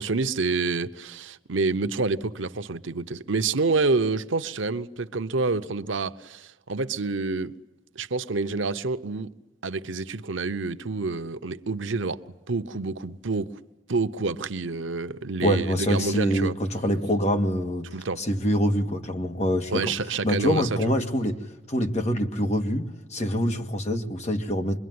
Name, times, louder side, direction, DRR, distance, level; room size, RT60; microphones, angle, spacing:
voice 1, 0.0-7.5 7.9-9.3 9.6-12.2 12.5-13.5 13.9-16.5 17.9-18.2 19.7-20.9, right 3 dB, 85° right, 0.9 m, -28 dB
voice 2, 15.4-19.9 20.2-24.8, equal, 35° left, 2.0 m, -25 dB
25.5 x 22.5 x 9.6 m
head